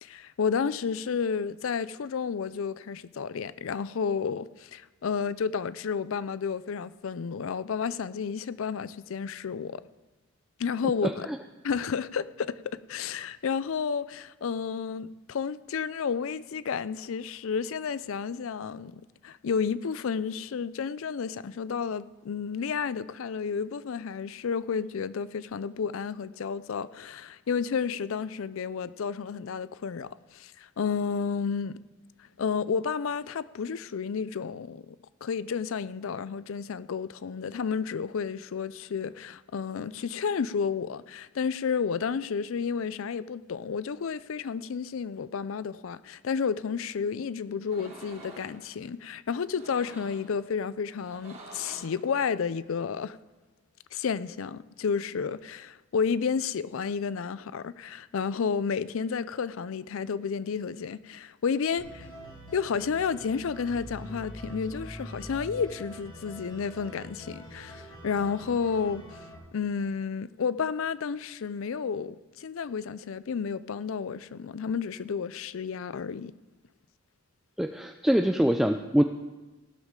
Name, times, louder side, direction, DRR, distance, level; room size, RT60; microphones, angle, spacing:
voice 1, 0.0-9.8 10.6-11.3 11.6-31.8 32.4-35.0 35.2-53.2 53.9-62.1 62.5-69.0 69.5-76.3, left 6 dB, 70° left, 0.4 m, -31 dB
voice 2, 11.0-11.4 77.6-79.0, equal, ahead, 0.3 m, -24 dB
sound 1, 47.6-48.6 49.5-50.3 51.0-52.0, right 2 dB, 30° right, 2.2 m, -47 dB
sound 2, 61.8-69.3, equal, 25° left, 4.5 m, -44 dB
16.5 x 12.5 x 3.8 m
head